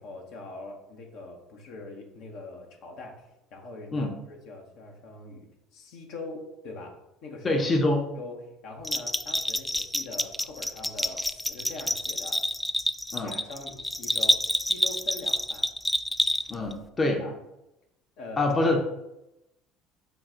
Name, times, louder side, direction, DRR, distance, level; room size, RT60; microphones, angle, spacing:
voice 1, 0.0-7.0 7.2-7.6 8.2-12.4 13.1-15.7 17.1-17.4 18.2-18.5, left 3 dB, 65° left, 2 dB, 0.9 m, -42 dB
voice 2, 7.4-8.0 13.1-13.3 16.5-17.2 18.4-18.9, left 2 dB, 30° left, 2 dB, 0.8 m, -25 dB
Bell, 8.8-16.7, left 1 dB, 5° left, 0.3 m, -28 dB
5.9 x 2.3 x 3.8 m, 0.88 s
hypercardioid pair, 70°, 0 cm